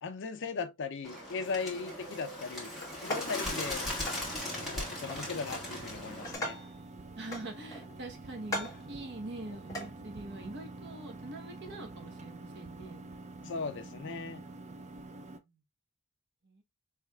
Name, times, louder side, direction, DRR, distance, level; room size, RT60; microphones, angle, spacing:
voice 1, 0.0-2.7 3.0-3.9 4.5-6.6 13.4-14.4, left 4 dB, 55° left, 0.5 m, -38 dB
Bird, 1.0-6.4, left 1 dB, ahead, 1.7 m, -38 dB
sound 1, 2.8-3.5 4.1-4.3 5.1-5.7 6.1-6.8 7.3-8.0 8.4-8.9 9.7-9.9, left 1 dB, 15° left, 1.3 m, -39 dB
sound 2, 3.4-15.4, right 2 dB, 30° right, 0.4 m, -47 dB
voice 2, 7.2-13.0 14.9-15.6 16.4-16.6, right 2 dB, 50° right, 0.9 m, -44 dB
4.6 x 3.2 x 2.3 m
head